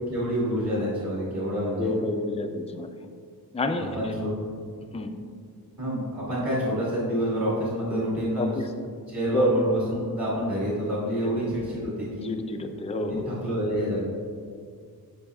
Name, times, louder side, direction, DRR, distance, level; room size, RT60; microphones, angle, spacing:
voice 1, 0.1-1.9 3.8-4.5 5.8-8.5 9.1-12.3 13.0-14.0, equal, 45° right, -7 dB, 1.6 m, -28 dB
voice 2, 1.8-2.9 3.5-4.2 4.9-5.1 8.4-8.7 9.3-9.6 11.2-11.3 12.2-13.3, left 1 dB, 20° left, 6 dB, 0.3 m, -28 dB
14.0 x 4.9 x 2.3 m, 2.1 s
wide cardioid pair, 180°, 38 cm